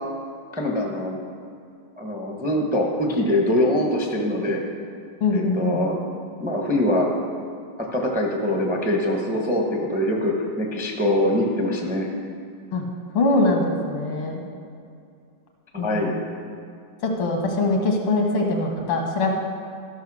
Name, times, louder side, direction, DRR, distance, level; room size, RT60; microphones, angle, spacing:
voice 1, 0.5-1.2 2.0-4.6 5.3-6.0 6.4-7.1 7.9-12.1 15.7-16.1, left 1 dB, 10° right, 0 dB, 0.6 m, -23 dB
voice 2, 5.2-5.8 12.7-12.8 13.1-14.4 15.8-16.2 17.0-19.3, left 2 dB, 80° left, 1 dB, 2.3 m, -22 dB
13.5 x 5.6 x 6.3 m, 2.4 s
omnidirectional pair, 2.4 m